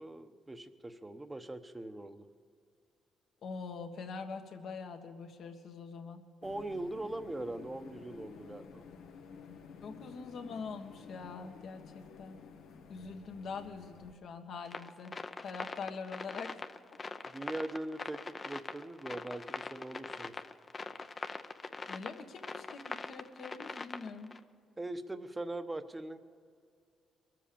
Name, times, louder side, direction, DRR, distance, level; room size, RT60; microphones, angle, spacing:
voice 1, 0.0-2.2 6.4-8.8 17.3-18.2 18.4-20.4 24.8-26.2, right 2 dB, 15° right, 9 dB, 0.9 m, -41 dB
voice 2, 3.4-6.3 9.8-12.4 12.9-15.1 15.4-16.5 21.9-24.3, left 5 dB, 65° left, 5 dB, 1.5 m, -44 dB
sound 1, 6.4-14.1, left 6 dB, 90° left, 1.3 m, -52 dB
sound 2, 14.6-24.4, left 4 dB, 30° left, 0.7 m, -42 dB
22.0 x 7.6 x 6.9 m, 2.2 s
cardioid pair, 90°, 0 cm